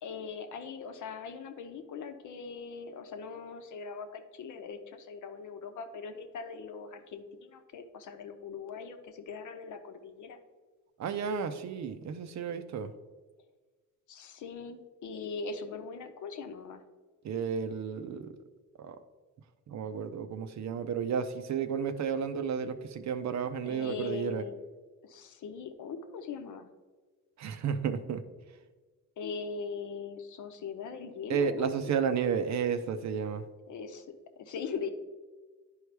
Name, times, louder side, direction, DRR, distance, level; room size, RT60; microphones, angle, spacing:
voice 1, 0.0-10.4 14.1-16.8 23.6-24.6 25.0-26.7 29.2-31.9 33.7-34.1 34.4-34.9, left 5 dB, 65° left, 7 dB, 0.9 m, -40 dB
voice 2, 11.0-12.9 17.2-18.4 18.8-19.0 19.7-24.4 27.4-28.2 31.3-33.4, right 6 dB, 55° right, 10 dB, 0.7 m, -32 dB
10.5 x 4.7 x 3.3 m, 1.4 s
cardioid pair, 105°, 33 cm